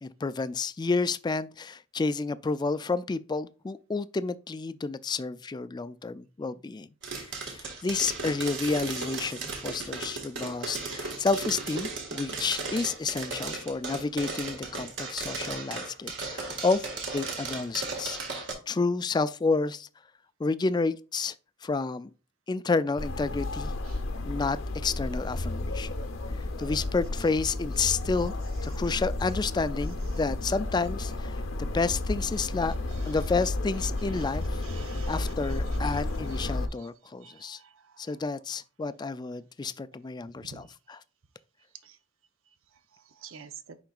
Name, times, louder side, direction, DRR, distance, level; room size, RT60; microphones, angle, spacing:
voice 1, 0.0-6.9 7.2-19.9 20.4-21.3 21.6-22.1 22.5-23.7 24.3-25.9 26.4-28.3 28.6-32.7 33.1-34.6 35.1-37.6 38.0-41.0, left 4 dB, 20° left, 0.3 m, -30 dB
sound 1, 7.0-18.5, right 3 dB, 65° right, 1.8 m, -36 dB
sound 2, 23.0-36.7, left 2 dB, 85° left, 0.9 m, -32 dB
voice 2, 34.6-38.1 40.3-40.7 41.8-42.0 42.9-43.8, right 7 dB, 85° right, 0.7 m, -51 dB
10.5 x 3.9 x 2.4 m
head